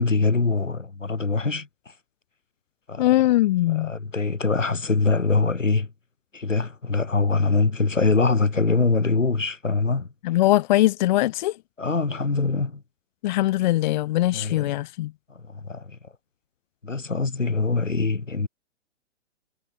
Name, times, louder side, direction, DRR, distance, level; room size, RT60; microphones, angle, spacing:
voice 1, 0.0-1.7 2.9-3.1 3.7-5.9 6.3-10.1 11.8-12.8 14.3-14.8 15.5-16.0 16.8-18.5, left 4 dB, 85° left, 4.0 m, -23 dB
voice 2, 3.0-3.9 10.2-11.6 13.2-15.1, left 16 dB, 40° left, 0.8 m, -21 dB
figure-of-eight pair, 120°, 37 cm